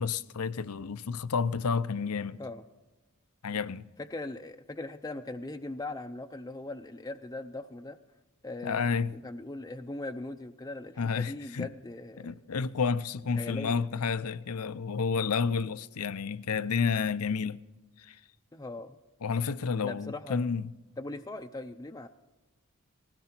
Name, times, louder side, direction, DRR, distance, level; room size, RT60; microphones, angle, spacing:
voice 1, 0.0-2.4 3.4-3.9 8.6-9.1 11.0-11.7 12.2-17.6 18.0-18.2 19.2-20.6, left 5 dB, 80° left, 0.6 m, -30 dB
voice 2, 4.0-8.0 8.4-12.4 13.4-13.8 18.5-19.0 19.8-20.5 21.0-22.1, left 2 dB, 15° left, 0.5 m, -40 dB
19.5 x 16.5 x 4.4 m
head